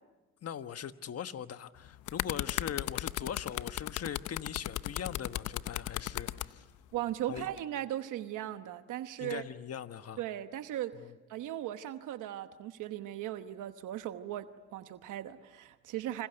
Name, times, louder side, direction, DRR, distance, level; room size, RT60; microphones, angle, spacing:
voice 1, 0.4-6.7 7.3-7.5 9.2-10.2 10.9-11.1, left 9 dB, 55° left, 10 dB, 1.3 m, -41 dB
sound 1, 1.8-6.5 7.4-7.6, left 14 dB, 80° left, 0.8 m, -35 dB
voice 2, 6.9-9.4 10.2-10.9 11.3-16.3, right 12 dB, 85° right, 9 dB, 1.1 m, -38 dB
28.0 x 26.0 x 7.9 m, 1.2 s
cardioid pair, 90°, 30 cm